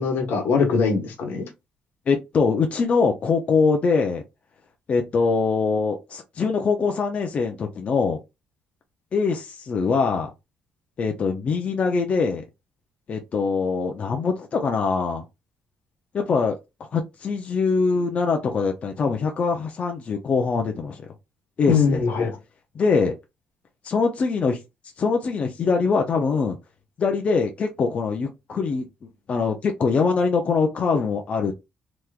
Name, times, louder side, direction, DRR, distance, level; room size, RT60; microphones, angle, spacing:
voice 1, 0.0-1.5 21.7-22.3, left 5 dB, 75° left, 1.2 m, -22 dB
voice 2, 2.1-4.2 4.9-8.2 9.1-10.3 11.0-12.4 13.1-15.2 16.1-16.6 16.9-21.0 21.6-22.0 22.7-23.1 23.8-24.6 25.0-26.6 27.0-28.9 29.3-31.5, left 4 dB, 40° left, 0.6 m, -23 dB
3.5 x 3.0 x 2.4 m
cardioid pair, 130°, 3 cm